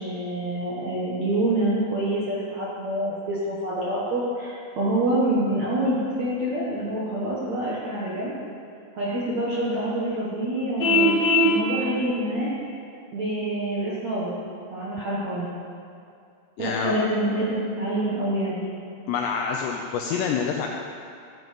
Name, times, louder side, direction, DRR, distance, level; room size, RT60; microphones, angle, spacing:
voice 1, 0.0-8.3 8.9-12.5 13.1-14.3 14.7-15.5 16.6-18.7, right 1 dB, 65° right, -7 dB, 1.8 m, -26 dB
Vehicle horn car horn honking, 10.8-11.6, left 1 dB, 65° left, 5.2 m, -19 dB
voice 2, 16.6-17.0 19.1-20.7, left 6 dB, 85° left, 1 dB, 2.4 m, -27 dB
15.0 x 9.5 x 5.3 m, 2.4 s
omnidirectional pair, 5.7 m